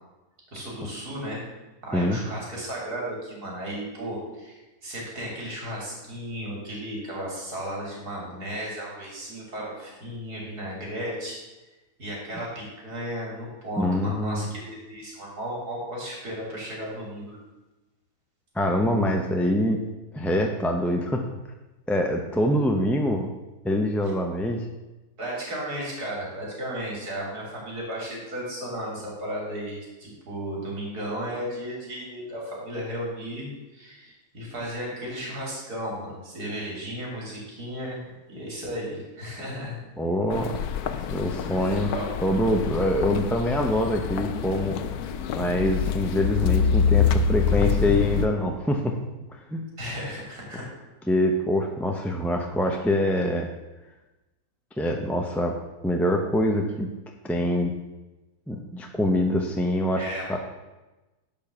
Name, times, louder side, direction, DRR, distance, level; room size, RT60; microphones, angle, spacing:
voice 1, 0.5-1.4 1.8-11.4 12.0-17.4 25.2-38.0 38.3-39.8 40.8-41.0 41.7-42.2 49.8-50.7 60.0-60.4, equal, 80° right, -3 dB, 3.9 m, -34 dB
voice 2, 13.8-14.5 18.5-19.8 20.1-21.2 21.9-23.3 23.6-24.7 40.0-40.6 41.1-41.9 42.2-44.8 45.3-49.0 49.3-49.6 51.1-53.5 54.8-55.6 55.8-56.9 57.2-57.7 58.5-60.4, left 1 dB, ahead, 2 dB, 0.5 m, -24 dB
sound 1, 40.3-48.3, left 7 dB, 75° left, 1.2 m, -26 dB
10.5 x 5.4 x 7.0 m, 1.1 s
omnidirectional pair, 1.6 m